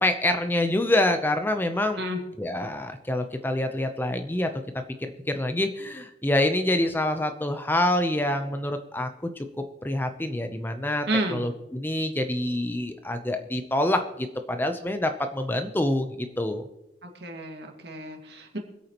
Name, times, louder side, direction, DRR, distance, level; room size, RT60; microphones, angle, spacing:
voice 1, 0.0-2.0 2.4-4.5 5.0-9.1 9.4-9.5 9.8-16.7, left 1 dB, 10° left, 7 dB, 0.7 m, -26 dB
voice 2, 11.1-11.4 17.0-18.6, right 1 dB, 70° right, 2 dB, 2.0 m, -31 dB
24.5 x 8.4 x 3.0 m, 0.89 s
head